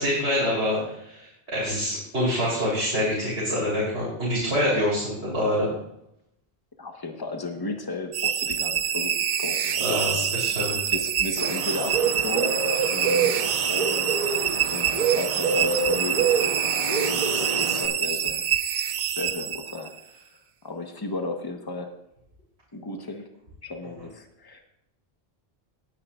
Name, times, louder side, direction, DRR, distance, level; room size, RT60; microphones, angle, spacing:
voice 1, 0.0-5.7 9.8-10.8 17.3-17.8 18.1-18.2, left 1 dB, 90° right, -7 dB, 3.9 m, -26 dB
voice 2, 6.8-10.3 10.9-12.6 12.9-14.2 14.7-16.6 17.0-18.5 19.2-19.9 20.6-21.9 22.7-23.3 23.6-24.6, left 3 dB, 20° left, 4 dB, 1.2 m, -34 dB
sound 1, 8.1-20.0, right 9 dB, 55° right, 0.6 m, -26 dB
Bird, 11.4-17.9, right 5 dB, 35° right, 1.1 m, -26 dB
18.5 x 9.7 x 2.5 m, 0.80 s
omnidirectional pair, 1.1 m